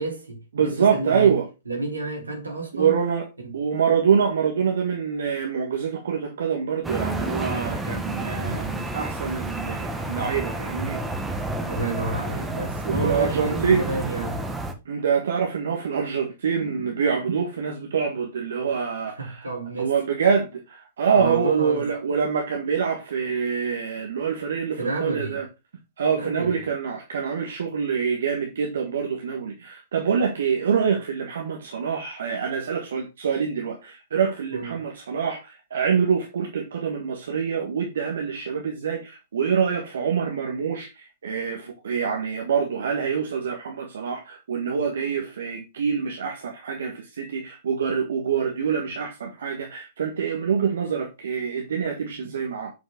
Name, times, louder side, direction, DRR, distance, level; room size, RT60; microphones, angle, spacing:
voice 1, 0.0-1.4 1.7-3.0 3.4-3.5 11.6-14.4 19.2-20.0 21.1-21.9 24.8-25.4 26.1-26.6 34.5-34.8, right 3 dB, 85° right, 3.2 m, -30 dB
voice 2, 0.6-1.5 2.7-3.3 3.5-11.0 12.9-13.8 14.9-19.5 19.8-25.4 26.0-52.7, right 6 dB, 65° right, 1.7 m, -25 dB
sound 1, 6.8-14.7, right 1 dB, 5° right, 1.3 m, -30 dB
7.6 x 5.4 x 3.8 m
figure-of-eight pair, 110°, 0 cm